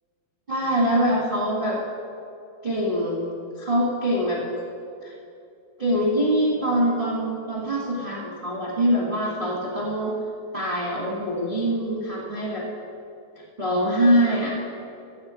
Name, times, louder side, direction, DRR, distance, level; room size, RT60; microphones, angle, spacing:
voice 1, 0.5-1.8 2.6-3.3 3.6-4.4 5.0-5.1 5.8-10.1 10.5-12.7 13.6-14.6, equal, 25° right, -5 dB, 1.3 m, -24 dB
15.0 x 5.7 x 8.3 m, 2.6 s
omnidirectional pair, 3.3 m